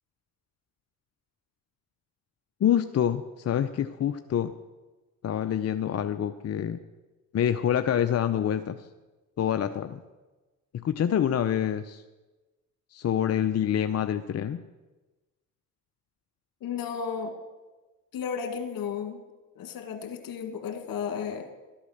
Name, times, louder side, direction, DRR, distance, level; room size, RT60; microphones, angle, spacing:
voice 1, 2.6-4.5 5.2-6.8 7.3-8.9 9.4-10.0 10.8-12.0 12.9-14.6, left 9 dB, 45° left, 9 dB, 0.6 m, -26 dB
voice 2, 16.6-17.3 18.1-19.2 19.6-21.5, left 6 dB, 65° left, 6 dB, 1.9 m, -33 dB
12.0 x 8.7 x 6.5 m, 1.2 s
supercardioid pair, 65°, 36 cm